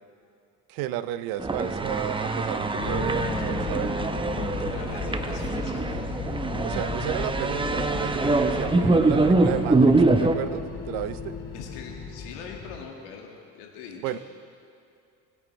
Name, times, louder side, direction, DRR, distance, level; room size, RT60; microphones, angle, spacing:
voice 1, 0.7-4.0 6.6-11.3 14.0-14.2, right 12 dB, 75° right, 14 dB, 0.7 m, -33 dB
sound 1, 1.4-10.4, right 3 dB, 15° right, 0.8 m, -24 dB
sound 2, 2.7-12.8, left 5 dB, 65° left, 2.2 m, -35 dB
voice 2, 4.7-5.8 11.5-14.2, left 6 dB, 90° left, 1 dB, 1.9 m, -42 dB
21.0 x 8.9 x 3.2 m, 2.6 s
supercardioid pair, 80°, 34 cm